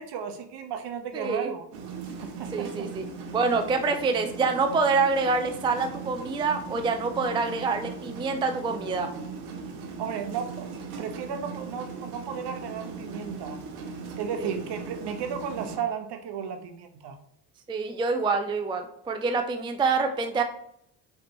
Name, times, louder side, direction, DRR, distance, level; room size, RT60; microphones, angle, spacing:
voice 1, 0.0-1.6 2.2-2.9 10.0-13.6 14.2-17.2, right 7 dB, 55° right, 7 dB, 0.9 m, -34 dB
voice 2, 1.1-1.5 2.5-3.1 3.3-9.1 14.4-14.5 17.7-20.4, right 4 dB, 10° right, 6 dB, 0.4 m, -26 dB
sound 1, 1.7-15.8, right 4 dB, 80° right, 0.9 m, -39 dB
4.8 x 3.3 x 3.0 m, 0.71 s
hypercardioid pair, 65°, 48 cm